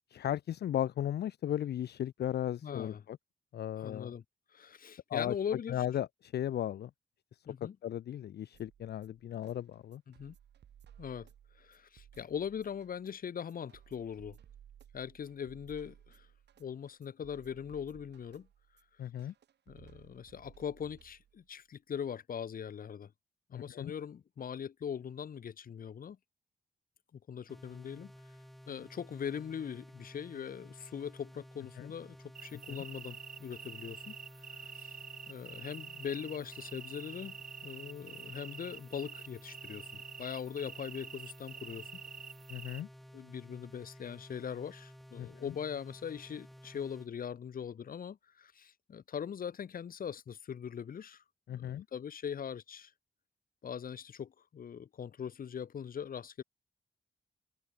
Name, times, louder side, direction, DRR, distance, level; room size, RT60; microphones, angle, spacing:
voice 1, 0.1-3.2 3.5-4.1 5.1-5.3 5.7-6.9 7.8-10.0 19.0-19.3 23.5-23.9 31.8-31.9 32.7-32.8 42.5-42.9 45.2-45.5 51.5-51.9, left 11 dB, 70° left, 0.5 m, -36 dB
voice 2, 2.6-3.0 3.8-4.2 4.5-5.8 7.5-7.8 10.1-10.3 11.0-11.3 11.6-14.4 14.9-16.3 16.6-18.5 19.7-23.1 23.5-26.2 27.1-28.1 28.7-34.1 34.5-35.0 35.3-37.4 37.6-42.0 43.1-51.2 51.5-52.9 53.6-56.4, left 8 dB, 55° left, 0.9 m, -41 dB
sound 1, 8.5-21.5, right 9 dB, 90° right, 1.2 m, -60 dB
sound 2, 27.5-47.1, equal, ahead, 1.7 m, -54 dB
sound 3, 32.3-42.8, right 7 dB, 55° right, 1.7 m, -48 dB
wide cardioid pair, 140°, 17 cm